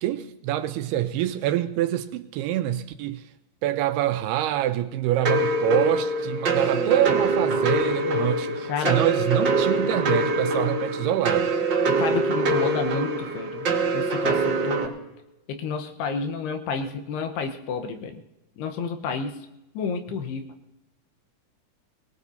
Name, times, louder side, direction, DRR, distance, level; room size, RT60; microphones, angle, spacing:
voice 1, 0.0-3.2 3.6-11.5 20.1-20.2, right 12 dB, 85° right, 9 dB, 2.7 m, -25 dB
sound 1, 5.2-14.9, right 2 dB, 50° right, 1.3 m, -24 dB
voice 2, 6.7-7.1 8.7-9.0 12.0-14.9 15.5-18.2 18.6-19.4 19.7-20.5, left 5 dB, 85° left, 7 dB, 3.1 m, -30 dB
23.0 x 19.0 x 2.8 m, 0.94 s
omnidirectional pair, 4.6 m